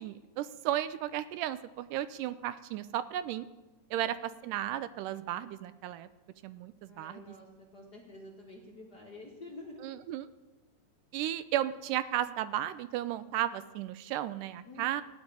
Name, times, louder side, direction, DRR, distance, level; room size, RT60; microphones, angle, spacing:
voice 1, 0.0-3.5 3.9-6.1 6.4-7.4 9.8-10.3 11.1-15.0, right 12 dB, 80° right, 14 dB, 2.1 m, -34 dB
voice 2, 3.9-4.4 6.8-7.5 7.7-9.9 14.6-15.0, left 2 dB, 40° left, -2 dB, 1.5 m, -49 dB
16.0 x 5.3 x 9.5 m, 1.1 s
omnidirectional pair, 3.8 m